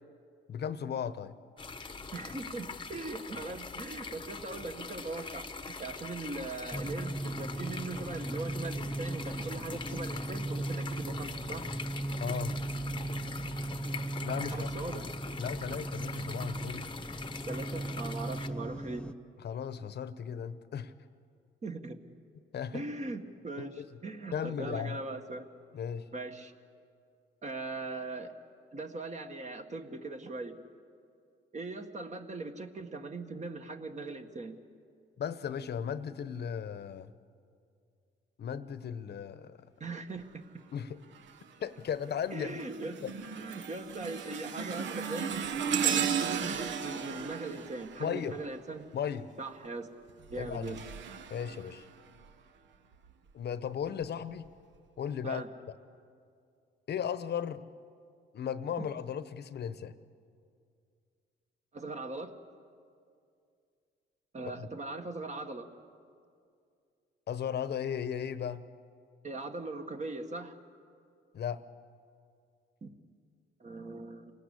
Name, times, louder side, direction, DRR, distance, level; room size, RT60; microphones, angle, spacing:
voice 1, 0.5-1.4 12.2-12.5 14.2-14.7 15.4-16.9 19.4-20.9 22.5-22.8 23.6-23.9 24.3-25.0 25.7-26.1 35.2-37.1 38.4-39.6 40.7-41.0 41.6-42.6 43.0-43.1 48.0-48.4 48.9-49.3 50.3-50.8 51.3-51.9 53.3-54.5 55.0-55.4 56.9-57.6 58.3-59.9 64.6-64.7 67.3-68.6 71.3-71.6, left 8 dB, 55° left, 13 dB, 1.0 m, -36 dB
sound 1, 1.6-18.5, left 4 dB, 25° left, 1.0 m, -43 dB
voice 2, 2.1-5.5 5.8-11.6 14.5-15.1 17.5-19.0 21.6-22.0 22.7-25.5 26.1-26.5 27.4-28.3 28.7-30.6 31.5-34.6 39.8-40.4 42.3-43.0 43.4-48.8 49.4-49.9 50.3-50.8 55.2-55.5 58.8-58.9 61.7-62.3 64.3-65.7 69.2-70.5 72.8-72.9 73.6-74.3, right 3 dB, 35° right, 5 dB, 1.8 m, -40 dB
sound 2, 6.7-19.1, right 1 dB, 5° left, 0.7 m, -37 dB
sound 3, 41.1-41.5 42.0-48.8 50.1-52.3 52.9-53.1 54.0-54.1, right 7 dB, 70° right, 1.1 m, -35 dB
27.5 x 18.0 x 8.4 m, 2.3 s
cardioid pair, 90°, 20 cm